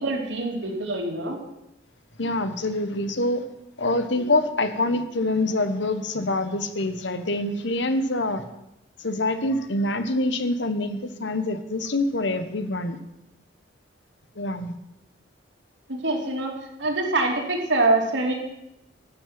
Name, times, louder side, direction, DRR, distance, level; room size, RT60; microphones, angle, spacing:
voice 1, 0.0-1.4 15.9-16.5 16.8-18.3, right 2 dB, 65° right, 1 dB, 2.8 m, -24 dB
voice 2, 2.2-3.4 3.8-8.4 9.0-13.0 14.4-14.7, left 2 dB, 60° left, 10 dB, 1.2 m, -25 dB
12.0 x 7.7 x 9.3 m, 0.89 s
head